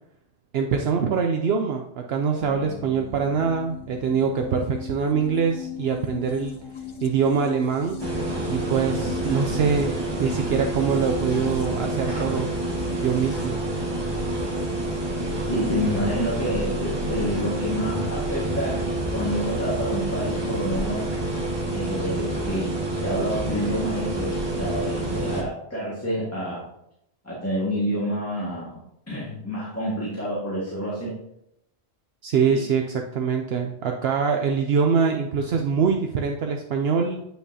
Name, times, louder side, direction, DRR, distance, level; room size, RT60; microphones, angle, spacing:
voice 1, 0.5-6.6 7.0-8.0 8.5-12.5 13.0-13.6 32.2-37.2, right 6 dB, 70° right, 3 dB, 0.8 m, -24 dB
sound 1, 2.4-14.9, left 6 dB, 45° left, 0.4 m, -39 dB
sound 2, 8.0-25.4, right 1 dB, 25° right, 1.3 m, -28 dB
voice 2, 15.5-21.1 21.7-26.6 27.2-31.1 32.5-32.6, equal, 15° left, -8 dB, 1.9 m, -28 dB
9.1 x 5.7 x 2.8 m, 0.78 s
omnidirectional pair, 1.1 m